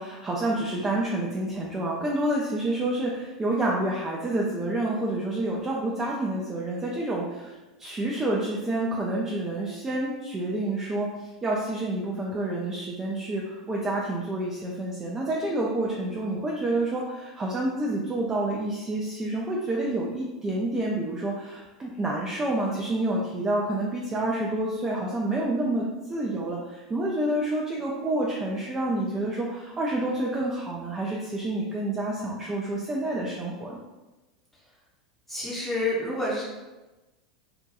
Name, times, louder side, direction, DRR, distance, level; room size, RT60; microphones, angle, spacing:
voice 1, 0.0-7.5 7.8-33.8, right 1 dB, 15° right, -3 dB, 0.3 m, -28 dB
voice 2, 35.3-36.4, left 1 dB, 5° left, -7 dB, 0.7 m, -28 dB
2.6 x 2.2 x 2.5 m, 1.1 s
figure-of-eight pair, 80°, 3 cm